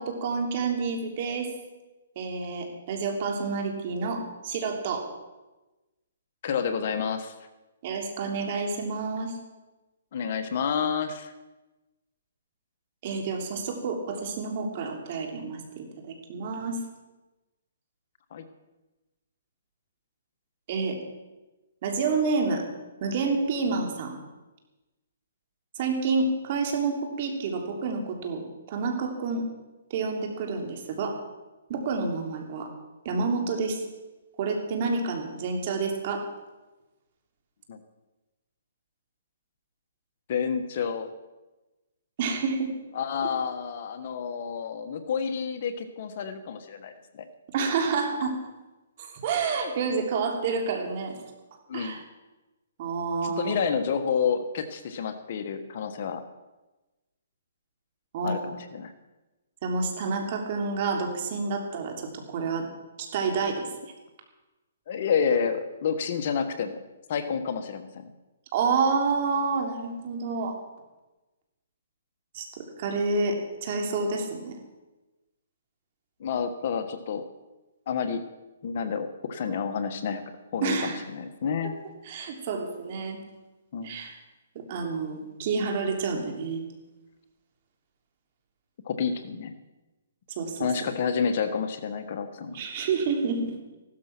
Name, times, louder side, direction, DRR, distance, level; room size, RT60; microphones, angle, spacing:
voice 1, 0.0-1.5 2.1-5.1 7.8-9.4 13.0-16.8 20.7-21.0 21.8-22.6 23.0-24.1 25.7-29.4 29.9-31.2 31.7-32.7 33.0-33.8 34.4-36.2 42.2-42.7 47.5-48.3 49.0-51.2 51.7-52.0 52.8-53.6 58.1-58.4 59.6-62.7 63.0-63.7 68.5-70.6 72.3-74.5 80.6-81.0 82.0-83.2 83.8-84.1 84.5-86.6 90.4-90.9 92.5-93.5, right 4 dB, 40° right, 3 dB, 3.1 m, -29 dB
voice 2, 6.4-7.3 10.1-11.3 18.3-18.4 37.7-37.8 40.3-41.1 42.9-47.3 51.7-52.0 53.2-56.2 58.2-58.9 64.9-66.8 67.1-68.0 76.2-77.2 77.9-78.2 78.6-80.2 80.5-81.7 83.7-84.0 88.8-89.5 90.6-92.6, left 6 dB, 45° left, 8 dB, 1.3 m, -29 dB
15.5 x 12.5 x 6.1 m, 1.1 s
hypercardioid pair, 155°, 0 cm